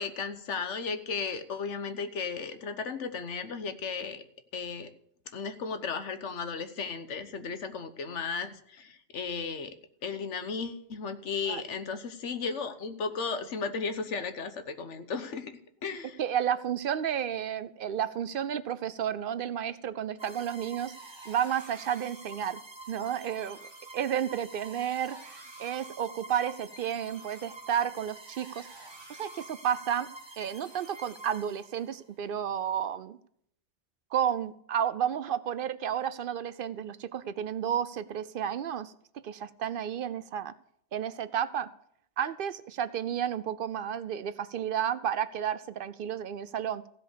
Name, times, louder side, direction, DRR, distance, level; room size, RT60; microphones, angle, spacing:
voice 1, 0.0-4.2 4.5-4.9 5.3-9.7 10.0-15.5 15.8-16.2, left 5 dB, 85° left, 9 dB, 1.3 m, -35 dB
voice 2, 16.2-20.9 21.3-22.6 22.9-23.6 23.9-28.7 29.1-30.1 30.4-33.2 34.1-40.5 40.9-41.7 42.2-46.8, right 9 dB, 60° right, 14 dB, 0.6 m, -32 dB
sound 1, 20.2-32.0, right 2 dB, 25° right, 1.3 m, -48 dB
15.5 x 5.3 x 6.7 m, 0.68 s
omnidirectional pair, 1.2 m